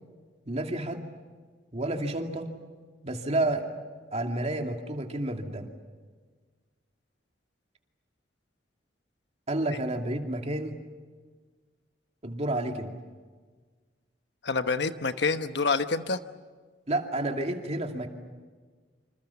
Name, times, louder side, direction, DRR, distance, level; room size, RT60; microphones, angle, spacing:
voice 1, 0.5-1.1 1.7-2.6 3.0-3.7 4.1-5.7 9.5-10.8 12.2-12.9 16.9-18.1, right 1 dB, 40° right, 4 dB, 2.6 m, -30 dB
voice 2, 14.4-16.2, left 4 dB, 70° left, 9 dB, 1.2 m, -27 dB
27.5 x 26.5 x 7.2 m, 1.4 s
head